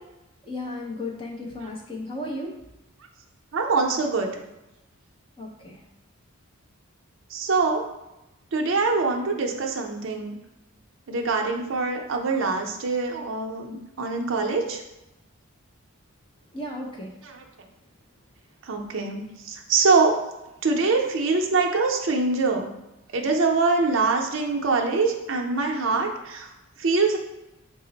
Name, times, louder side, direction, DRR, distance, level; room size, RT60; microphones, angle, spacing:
voice 1, 0.4-2.5 5.4-5.8 16.5-17.1, left 1 dB, 20° left, -1 dB, 0.6 m, -34 dB
voice 2, 3.5-4.3 7.3-7.8 8.5-10.4 11.1-14.8 17.3-17.4 18.6-20.2 20.6-22.7 23.1-26.5 26.8-27.2, right 4 dB, 60° right, 2 dB, 0.5 m, -24 dB
4.9 x 2.0 x 3.9 m, 0.95 s
head